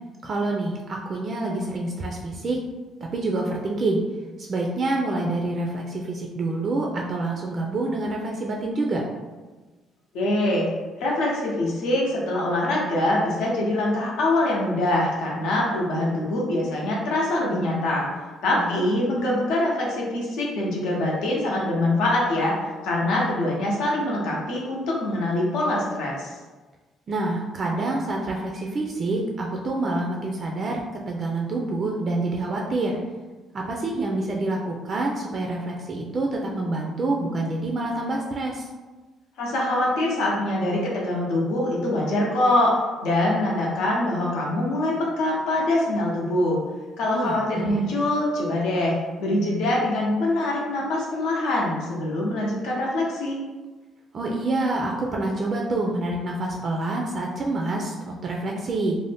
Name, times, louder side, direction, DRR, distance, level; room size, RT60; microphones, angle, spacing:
voice 1, 0.2-2.6 3.0-4.0 4.4-9.0 18.6-18.9 27.1-33.0 33.5-38.7 47.1-47.8 54.1-59.0, right 2 dB, 40° right, -1 dB, 0.3 m, -27 dB
voice 2, 10.1-10.7 11.0-18.1 18.4-22.5 22.8-26.3 39.4-42.7 43.0-46.6 47.0-53.4, left 1 dB, 85° left, -3 dB, 0.8 m, -24 dB
2.6 x 2.0 x 3.3 m, 1.3 s
cardioid pair, 135°, 0 cm